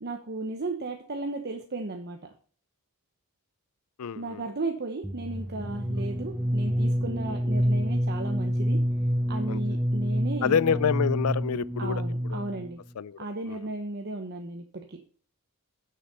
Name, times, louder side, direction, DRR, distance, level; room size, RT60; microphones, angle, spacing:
voice 1, 0.0-2.3 4.1-8.8 9.3-10.8 11.8-12.8 13.2-15.0, right 2 dB, 50° right, 1.0 m, -35 dB
voice 2, 4.0-4.4 9.5-9.6 10.4-12.0 12.3-12.5 13.0-13.2 13.5-13.6, left 7 dB, 75° left, 0.4 m, -27 dB
sound 1, 5.0-12.7, equal, 5° right, 0.5 m, -28 dB
9.8 x 6.7 x 5.5 m
head